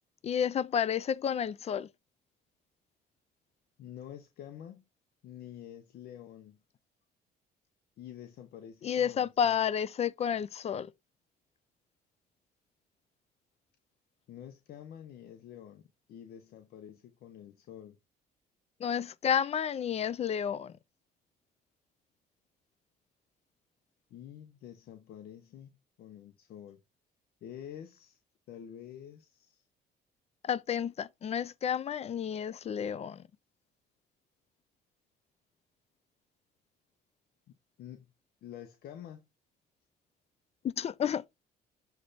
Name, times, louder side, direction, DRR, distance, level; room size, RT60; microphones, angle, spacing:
voice 1, 0.2-1.9 8.8-10.9 18.8-20.7 30.4-33.2 40.6-41.2, left 8 dB, 40° left, 0.5 m, -31 dB
voice 2, 3.8-4.8 5.2-6.6 8.0-9.6 14.3-18.0 24.1-26.8 27.4-28.2 28.5-29.6 37.5-38.0 38.4-39.3, left 10 dB, 65° left, 0.9 m, -48 dB
7.2 x 3.3 x 4.0 m
cardioid pair, 110°, 17 cm